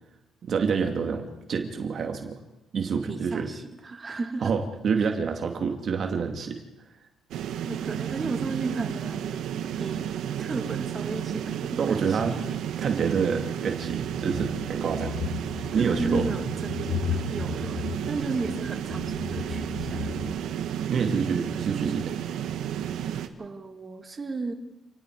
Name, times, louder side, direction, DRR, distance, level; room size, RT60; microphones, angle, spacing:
voice 1, 0.4-2.4 2.7-3.5 4.4-6.6 11.8-12.4 12.8-15.1 15.7-16.4 20.9-22.2, right 6 dB, 50° right, 4 dB, 2.3 m, -27 dB
voice 2, 3.1-4.5 5.0-5.1 7.6-9.4 9.8-10.0 10.4-12.4 15.7-20.1 23.4-24.5, right 3 dB, 25° right, 4 dB, 2.6 m, -34 dB
sound 1, 7.3-23.3, right 9 dB, 80° right, 1.7 m, -32 dB
sound 2, 13.7-20.3, left 8 dB, 55° left, 1.7 m, -35 dB
29.5 x 19.0 x 4.9 m, 0.99 s
cardioid pair, 130°, 0 cm